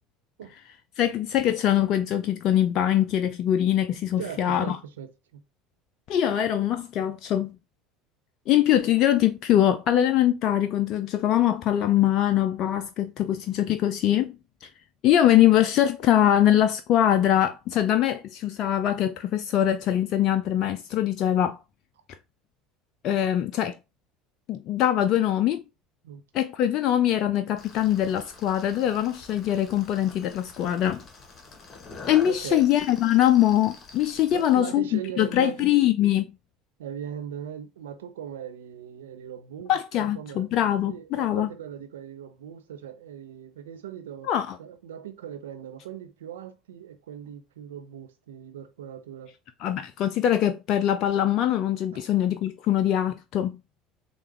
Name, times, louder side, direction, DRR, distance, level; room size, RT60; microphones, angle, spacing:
voice 1, 1.0-4.8 6.1-7.6 8.5-14.4 14.6-14.7 15.0-21.6 23.0-23.8 24.5-25.6 26.3-31.0 32.1-36.3 39.7-41.5 44.2-44.6 49.6-53.6, left 11 dB, 50° left, 0.4 m, -23 dB
voice 2, 4.2-5.4 26.0-26.2 32.3-32.7 34.3-35.7 36.8-40.5 40.9-44.3 44.6-49.3 51.9-52.0, right 9 dB, 75° right, 0.7 m, -39 dB
sound 1, 27.6-34.6, left 3 dB, 30° left, 1.4 m, -46 dB
6.5 x 2.4 x 3.2 m
figure-of-eight pair, 70°, 0 cm